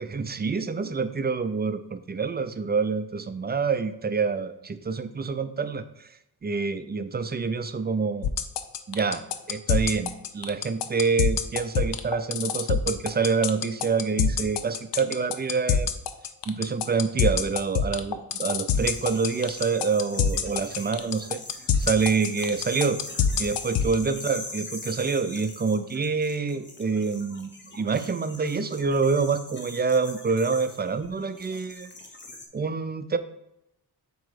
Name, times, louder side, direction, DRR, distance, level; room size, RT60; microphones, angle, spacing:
voice 1, 0.2-6.1 6.4-8.3 8.9-9.2 9.5-15.9 16.5-21.4 21.8-23.0 23.4-31.9 32.5-33.2, right 5 dB, 25° right, 11 dB, 0.4 m, -27 dB
sound 1, 8.2-23.9, left 8 dB, 90° left, 0.6 m, -24 dB
sound 2, 18.7-32.5, left 2 dB, 25° left, 0.9 m, -42 dB
7.4 x 3.0 x 4.9 m, 0.86 s
wide cardioid pair, 100°, 40 cm